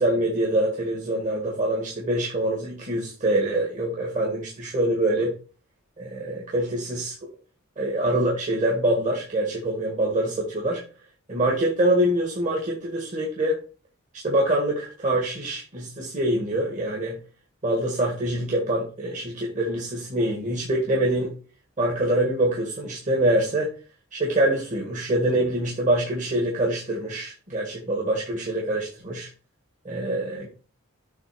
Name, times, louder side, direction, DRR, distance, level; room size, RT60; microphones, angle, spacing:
voice 1, 0.0-5.3 6.0-7.1 7.8-10.8 11.3-13.6 14.2-17.2 17.6-21.3 21.8-23.7 24.1-29.3 29.8-30.5, right 1 dB, 35° right, -3 dB, 2.0 m, -25 dB
8.0 x 3.7 x 5.2 m, 0.35 s
head